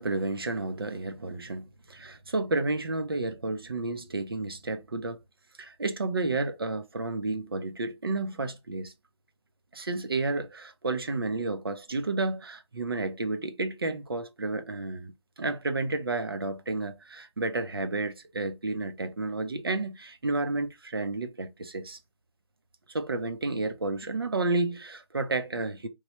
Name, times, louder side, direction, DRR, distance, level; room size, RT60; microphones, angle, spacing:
voice 1, 0.0-5.2 5.6-8.9 9.7-15.1 15.4-22.0 22.9-25.9, right 3 dB, 50° right, 0.5 m, -31 dB
3.1 x 2.2 x 2.9 m
figure-of-eight pair, 175°, 16 cm